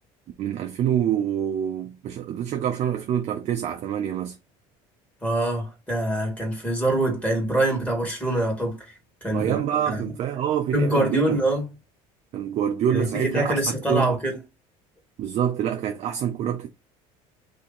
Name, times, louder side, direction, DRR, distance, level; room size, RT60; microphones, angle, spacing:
voice 1, 0.4-4.4 9.3-11.4 12.3-13.6 13.9-14.1 15.2-16.7, right 9 dB, 50° right, 0.7 m, -26 dB
voice 2, 5.2-9.6 9.9-10.1 10.7-11.7 12.9-14.4, right 1 dB, 10° left, 1.9 m, -25 dB
2.9 x 2.8 x 3.8 m
supercardioid pair, 115°, 14 cm